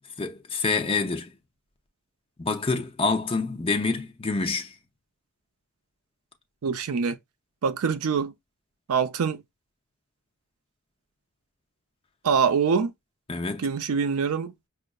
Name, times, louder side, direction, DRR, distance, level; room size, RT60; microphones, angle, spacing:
voice 1, 0.2-1.3 2.4-4.8 13.3-13.7, left 4 dB, 25° left, 0.6 m, -27 dB
voice 2, 6.6-7.2 7.6-8.3 8.9-9.4 12.2-12.9 13.6-14.5, right 6 dB, 80° right, 0.5 m, -24 dB
5.2 x 2.4 x 2.3 m
head